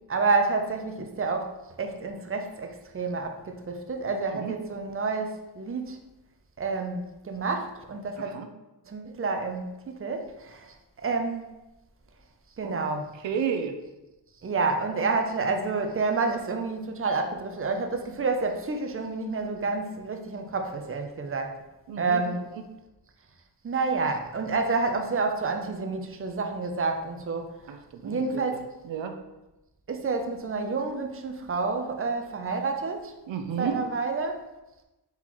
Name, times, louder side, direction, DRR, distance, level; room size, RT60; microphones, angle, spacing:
voice 1, 0.1-6.0 6.6-8.3 8.9-11.5 12.6-13.1 14.4-21.6 22.0-22.4 23.6-27.6 28.0-28.7 29.9-33.1 33.6-34.4, right 4 dB, 30° right, 5 dB, 0.5 m, -29 dB
voice 2, 8.2-8.5 12.6-12.8 13.2-13.8 21.9-22.2 27.7-28.2 28.5-29.2 33.3-33.8, right 7 dB, 80° right, 6 dB, 0.6 m, -32 dB
4.2 x 3.8 x 3.0 m, 1.0 s
wide cardioid pair, 105°, 44 cm